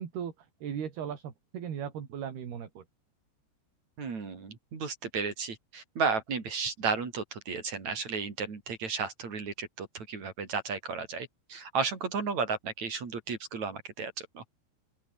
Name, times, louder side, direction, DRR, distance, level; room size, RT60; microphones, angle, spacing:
voice 1, 0.0-2.8, right 8 dB, 65° right, 5.0 m, -38 dB
voice 2, 4.0-14.4, right 5 dB, 40° right, 5.0 m, -33 dB
open air
omnidirectional pair, 5.0 m